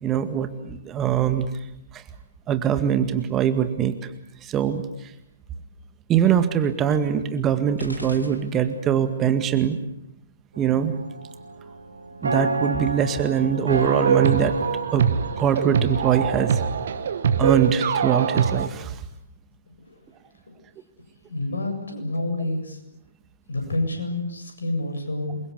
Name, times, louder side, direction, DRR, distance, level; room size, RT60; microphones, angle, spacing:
voice 1, 0.0-1.5 1.9-2.0 2.5-3.9 4.4-5.1 6.1-9.8 10.6-10.9 12.2-14.5 14.9-15.1 15.4-16.6 17.4-19.0, right 9 dB, 20° right, 9 dB, 1.9 m, -22 dB
sound 1, 7.8-9.1, equal, 90° left, 3.0 m, -38 dB
sound 2, 10.5-17.6, right 2 dB, 70° right, 2.9 m, -31 dB
sound 3, 13.7-18.7, right 6 dB, 55° right, 1.7 m, -24 dB
voice 2, 21.2-22.8 23.5-25.4, left 2 dB, 70° left, 5 dB, 7.7 m, -28 dB
28.0 x 23.0 x 8.3 m, 0.84 s
figure-of-eight pair, 125°, 0 cm